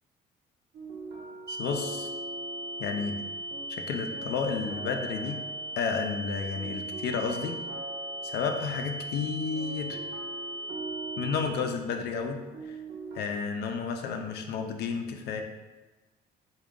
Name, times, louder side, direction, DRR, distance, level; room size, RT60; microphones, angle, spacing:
sound 1, 0.7-13.2, right 2 dB, 60° right, 0.6 m, -43 dB
voice 1, 1.5-2.1 2.8-3.2 3.7-5.4 5.8-7.6 8.2-10.0 11.2-12.8 13.2-15.4, left 5 dB, 75° left, 4 dB, 0.5 m, -32 dB
sound 2, 1.5-11.5, right 1 dB, 20° right, 0.3 m, -38 dB
3.5 x 2.3 x 3.6 m, 1.2 s
cardioid pair, 110°, 17 cm